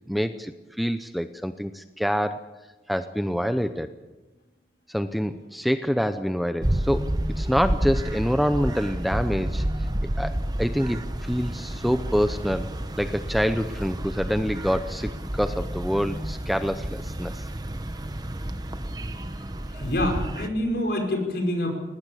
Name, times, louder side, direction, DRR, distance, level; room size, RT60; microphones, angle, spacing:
voice 1, 0.1-0.5 0.8-2.4 2.9-3.9 4.9-7.1 7.4-9.6 10.2-12.7 13.0-17.4, equal, ahead, 10 dB, 0.6 m, -26 dB
sound 1, 6.6-20.5, right 1 dB, 20° right, 1.0 m, -30 dB
voice 2, 19.7-21.7, left 1 dB, 65° left, 3 dB, 5.4 m, -26 dB
21.0 x 18.5 x 8.4 m, 1.2 s
head